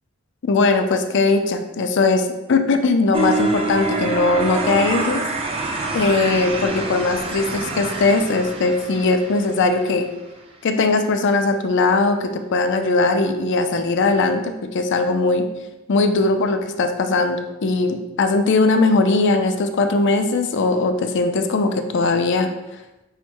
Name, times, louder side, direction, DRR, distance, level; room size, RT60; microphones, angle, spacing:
voice 1, 0.4-5.2 5.9-10.1 10.6-15.4 15.9-22.5, left 3 dB, 60° left, 7 dB, 0.4 m, -19 dB
sound 1, 3.1-10.1, right 2 dB, 25° right, 0.5 m, -26 dB
5.6 x 2.1 x 4.5 m, 1.0 s
head